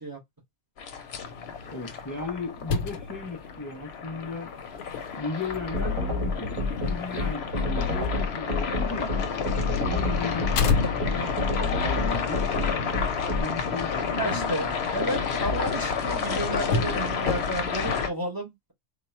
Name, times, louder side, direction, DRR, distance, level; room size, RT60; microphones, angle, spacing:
sound 1, 0.8-18.1, left 5 dB, 55° left, 0.9 m, -31 dB
sound 2, 0.9-18.1, left 4 dB, 85° left, 1.1 m, -35 dB
voice 1, 1.7-4.5 5.2-9.1 9.8-12.5 13.4-14.8, left 3 dB, 25° left, 0.4 m, -36 dB
sound 3, 5.7-13.4, left 2 dB, 70° right, 2.0 m, -27 dB
voice 2, 14.2-18.7, right 1 dB, 20° right, 0.8 m, -32 dB
4.0 x 2.3 x 4.2 m
omnidirectional pair, 1.5 m